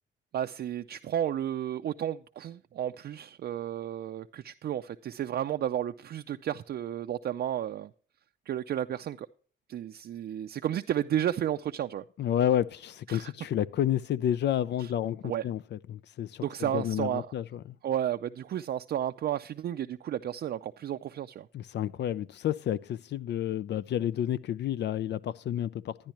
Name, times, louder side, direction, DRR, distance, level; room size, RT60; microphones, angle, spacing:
voice 1, 0.3-7.9 8.5-9.3 9.7-12.0 13.1-13.3 15.2-15.4 16.4-17.3 17.8-21.5, right 10 dB, 55° right, 0.5 m, -32 dB
voice 2, 12.2-17.8 21.5-26.0, left 10 dB, 65° left, 0.4 m, -30 dB
12.0 x 10.0 x 2.9 m
cardioid pair, 100°, 20 cm